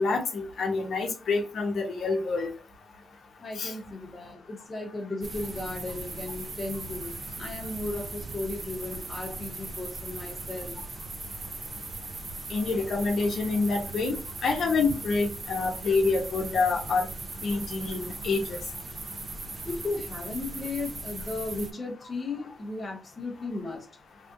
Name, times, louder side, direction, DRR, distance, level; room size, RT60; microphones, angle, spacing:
voice 1, 0.0-2.5 3.6-3.7 12.5-14.1 14.4-17.1 17.4-18.6, left 3 dB, 60° left, 2 dB, 0.8 m, -27 dB
voice 2, 3.4-10.8 19.6-23.9, left 2 dB, 25° left, 0 dB, 0.7 m, -35 dB
sound 1, 5.2-21.7, right 2 dB, 30° right, 0.5 m, -39 dB
3.4 x 2.4 x 2.6 m, 0.34 s
wide cardioid pair, 155°, 0 cm